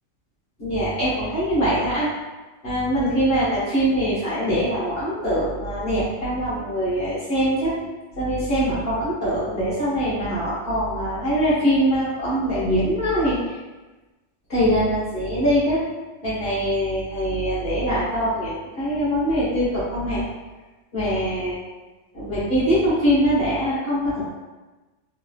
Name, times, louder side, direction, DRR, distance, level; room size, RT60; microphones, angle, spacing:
voice 1, 0.6-2.1 2.6-7.7 8.2-13.4 14.5-15.8 16.2-20.2 20.9-21.6 22.1-24.3, equal, 55° left, -9 dB, 1.1 m, -23 dB
3.1 x 2.8 x 2.3 m, 1.2 s
omnidirectional pair, 1.2 m